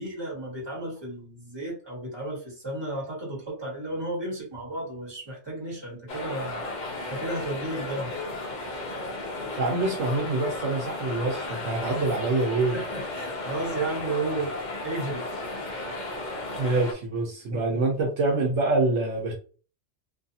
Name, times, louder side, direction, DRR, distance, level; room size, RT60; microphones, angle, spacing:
voice 1, 0.0-6.6 7.1-8.1 12.7-14.5 14.8-15.2 17.5-17.8, right 2 dB, 20° right, -3 dB, 1.3 m, -33 dB
sound 1, 6.1-16.9, left 2 dB, 50° left, 0.6 m, -34 dB
voice 2, 9.6-12.8 15.6-15.8 16.6-19.3, right 2 dB, 70° right, 0 dB, 0.9 m, -26 dB
2.6 x 2.4 x 2.7 m, 0.38 s
omnidirectional pair, 1.3 m